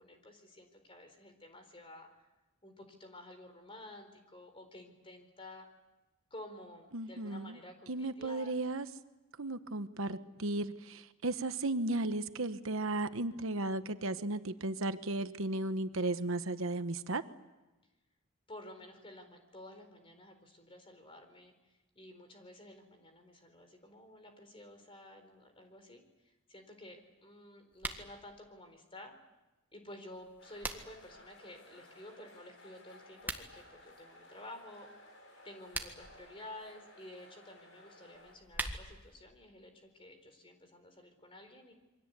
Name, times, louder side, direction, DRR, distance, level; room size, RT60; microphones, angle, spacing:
voice 1, 0.0-2.2 2.6-5.6 6.3-8.6 18.5-29.1 29.7-34.9 35.4-41.7, left 1 dB, 25° left, 6 dB, 4.3 m, -52 dB
voice 2, 6.9-7.6 7.9-8.9 9.4-17.2, right 2 dB, 70° right, 10 dB, 1.1 m, -35 dB
sound 1, 27.7-28.1 30.1-31.1 33.1-33.5 35.5-36.1 38.1-39.1, right 2 dB, 10° right, 1.7 m, -41 dB
sound 2, 30.4-38.4, left 1 dB, 60° left, 5.8 m, -57 dB
28.0 x 24.0 x 8.3 m, 1.1 s
head